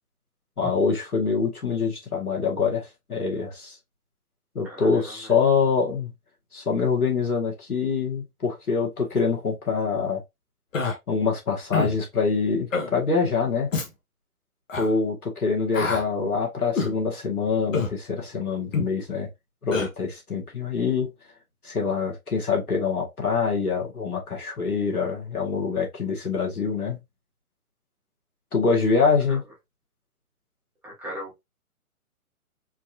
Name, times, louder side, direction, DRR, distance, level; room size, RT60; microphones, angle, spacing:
voice 1, 0.6-3.8 4.6-6.1 6.5-10.2 11.1-13.7 14.8-19.3 19.6-21.1 21.6-27.0 28.5-29.4, left 5 dB, 80° left, 1.8 m, -25 dB
voice 2, 4.6-5.3 30.8-31.3, equal, 5° right, 0.6 m, -37 dB
Human voice, 10.7-11.0 11.7-12.0 12.7-12.9 13.7-13.9 14.7-14.9 15.7-16.0 16.8-16.9 17.7-17.9 18.7-18.9 19.7-19.9, left 4 dB, 60° left, 1.3 m, -26 dB
4.4 x 2.6 x 2.6 m
figure-of-eight pair, 130°, 44 cm